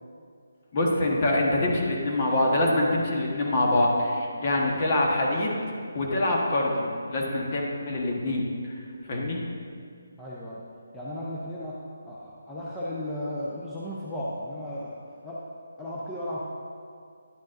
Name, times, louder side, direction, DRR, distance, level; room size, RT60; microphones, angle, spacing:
voice 1, 0.7-5.6 5.9-8.5 9.1-9.4, left 1 dB, 35° left, -2 dB, 1.3 m, -25 dB
voice 2, 10.2-10.6 10.9-11.8 12.0-14.9 15.2-15.4 15.8-16.5, left 1 dB, 10° left, -8 dB, 0.8 m, -35 dB
10.5 x 7.3 x 2.6 m, 2.3 s
figure-of-eight pair, 155°, 0 cm